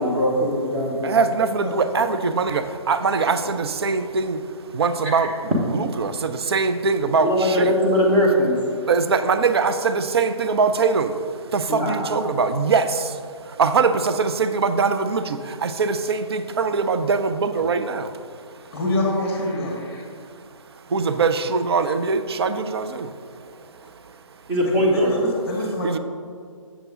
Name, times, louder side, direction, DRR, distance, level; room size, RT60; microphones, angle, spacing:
voice 1, 0.0-1.1 5.0-5.3 7.2-8.5 11.7-12.3 24.5-25.2, equal, 10° right, -2 dB, 0.8 m, -21 dB
voice 2, 1.0-5.3 5.7-7.7 8.9-18.7 20.2-20.3 20.7-23.4 24.0-24.1 25.8-26.0, right 4 dB, 50° right, 10 dB, 0.4 m, -22 dB
voice 3, 1.6-2.0 18.7-20.0 24.6-26.0, left 1 dB, 10° left, 0 dB, 1.1 m, -26 dB
7.2 x 6.6 x 3.6 m, 2.2 s
figure-of-eight pair, 155°, 17 cm